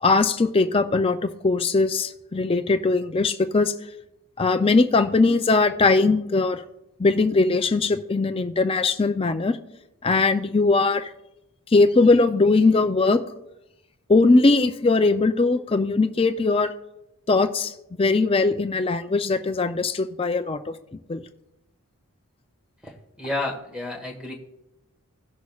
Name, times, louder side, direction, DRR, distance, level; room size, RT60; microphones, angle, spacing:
voice 1, 0.0-3.7 4.4-6.6 7.0-9.6 10.0-11.1 11.7-13.2 14.1-16.7 17.3-20.6 21.1-21.2, left 3 dB, 25° left, 8 dB, 0.4 m, -20 dB
voice 2, 22.8-24.3, left 2 dB, 5° right, 2 dB, 1.4 m, -31 dB
18.0 x 6.3 x 2.4 m, 0.88 s
head